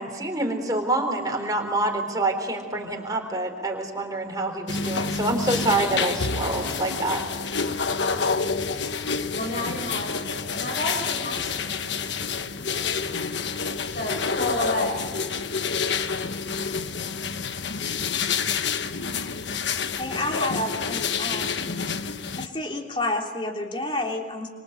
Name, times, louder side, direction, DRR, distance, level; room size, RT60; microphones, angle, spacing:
voice 1, 0.0-7.2, right 2 dB, 20° right, 2 dB, 4.0 m, -26 dB
sound 1, 4.7-22.5, left 5 dB, 70° left, 1.2 m, -28 dB
voice 2, 9.4-11.9 13.9-15.1, left 1 dB, 55° left, 0 dB, 6.6 m, -31 dB
voice 3, 19.9-21.6 22.4-24.5, left 2 dB, 25° left, 2 dB, 3.3 m, -29 dB
27.0 x 26.5 x 8.1 m, 1.5 s
head